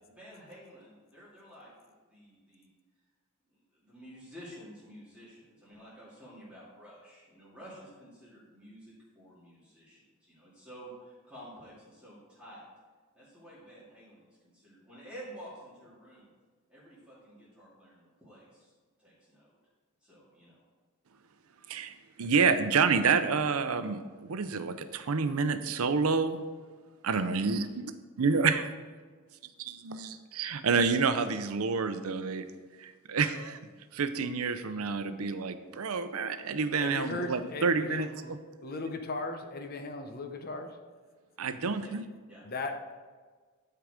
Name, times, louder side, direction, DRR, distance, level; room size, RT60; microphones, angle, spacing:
voice 1, 0.0-1.7 2.1-2.7 3.8-12.6 13.1-16.3 16.7-18.7 19.0-19.5 20.0-20.6 41.8-41.9 42.3-42.4, equal, 5° right, -10 dB, 2.5 m, -51 dB
voice 2, 21.7-26.5 27.0-27.9 28.2-28.7 29.6-32.4 32.8-33.6 33.9-38.2 41.4-42.0, right 5 dB, 80° right, 10 dB, 0.6 m, -28 dB
voice 3, 36.8-38.3 38.6-40.7 42.4-42.8, left 3 dB, 45° left, 6 dB, 0.8 m, -37 dB
11.5 x 4.7 x 5.0 m, 1.5 s
head